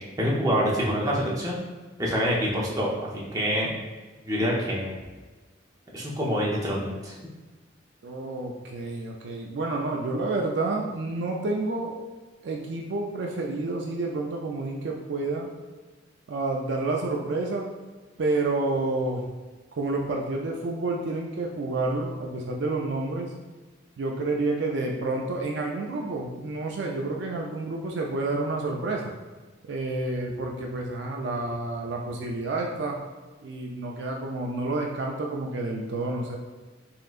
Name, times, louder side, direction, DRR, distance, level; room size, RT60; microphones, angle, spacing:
voice 1, 0.2-1.6 2.0-3.7 4.2-4.9 5.9-7.1, equal, 20° right, -5 dB, 0.7 m, -26 dB
voice 2, 8.0-12.0 12.4-15.5 16.3-17.7 18.2-19.2 19.8-23.3 24.0-29.1 29.7-33.0 33.4-36.4, right 2 dB, 60° right, 0 dB, 0.4 m, -29 dB
4.2 x 3.7 x 2.4 m, 1.3 s
head